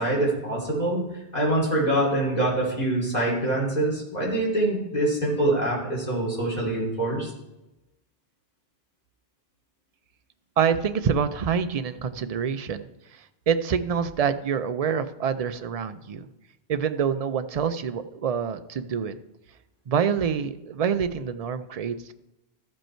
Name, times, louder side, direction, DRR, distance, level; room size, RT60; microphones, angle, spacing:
voice 1, 0.0-7.3, right 1 dB, 40° left, -4 dB, 3.1 m, -25 dB
voice 2, 10.6-12.8 13.5-16.3 16.7-19.1 19.9-22.1, right 7 dB, 50° right, 10 dB, 0.5 m, -26 dB
14.0 x 5.3 x 4.4 m, 0.95 s
omnidirectional pair, 1.1 m